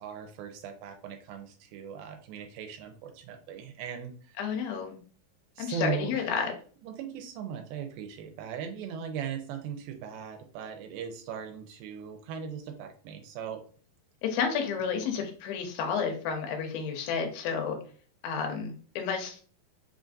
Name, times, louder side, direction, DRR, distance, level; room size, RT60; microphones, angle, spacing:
voice 1, 0.0-4.4 5.6-6.2 6.8-13.6, right 7 dB, 85° right, 5 dB, 2.4 m, -38 dB
voice 2, 4.4-5.0 5.6-6.5 14.2-17.8 18.2-19.4, left 6 dB, 90° left, 4 dB, 2.5 m, -31 dB
5.6 x 2.5 x 2.5 m, 0.42 s
omnidirectional pair, 4.3 m